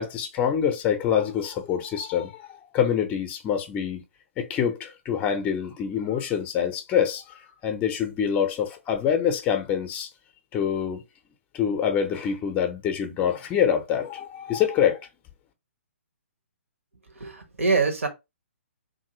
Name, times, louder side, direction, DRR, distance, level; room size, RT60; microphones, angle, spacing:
voice 1, 0.0-4.0 4.4-7.2 7.6-10.1 10.5-11.0 11.5-15.0, left 8 dB, 20° left, 0.5 m, -25 dB
voice 2, 17.1-18.1, right 4 dB, 75° right, 1.0 m, -24 dB
2.9 x 2.6 x 2.7 m
figure-of-eight pair, 135°, 7 cm